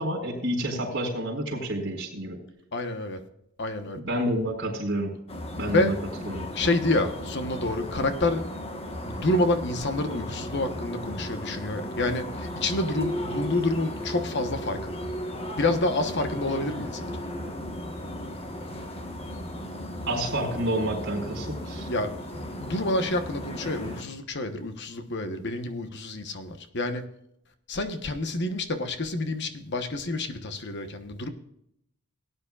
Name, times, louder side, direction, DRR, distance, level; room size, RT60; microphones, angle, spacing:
voice 1, 0.0-2.4 4.1-5.1 5.6-6.0 6.3-6.5 20.1-21.9, right 1 dB, 60° right, 2 dB, 4.2 m, -29 dB
voice 2, 2.7-3.2 3.6-4.0 5.6-6.0 6.5-8.4 9.1-15.1 15.6-17.1 21.9-22.1 22.6-27.0 27.7-31.3, left 2 dB, 55° left, 8 dB, 1.2 m, -28 dB
sound 1, 5.3-24.0, equal, 30° left, 1.4 m, -35 dB
18.5 x 9.7 x 2.4 m, 0.76 s
head